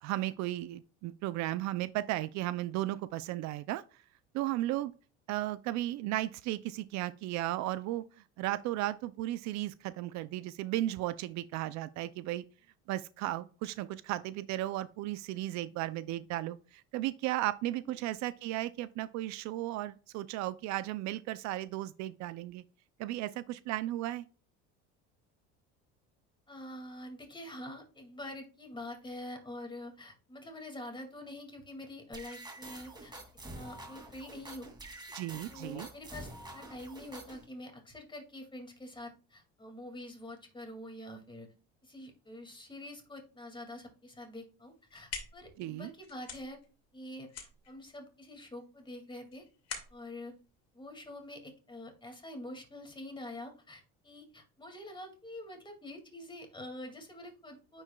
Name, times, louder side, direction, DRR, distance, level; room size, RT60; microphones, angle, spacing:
voice 1, 0.0-4.0 4.3-4.9 5.3-12.4 12.9-22.6 23.0-24.3 35.1-35.9 45.6-45.9, right 15 dB, 60° right, 0.5 m, -35 dB
voice 2, 26.5-33.1 33.5-34.7 35.5-41.5 41.8-46.6 46.9-47.3 47.7-49.5 49.9-50.3 50.7-57.8, left 1 dB, 15° left, 2.2 m, -46 dB
sound 1, 32.1-37.5, right 1 dB, 15° right, 2.4 m, -47 dB
sound 2, 44.6-51.5, left 6 dB, 50° left, 2.2 m, -47 dB
9.7 x 4.6 x 2.3 m
supercardioid pair, 105°, 32 cm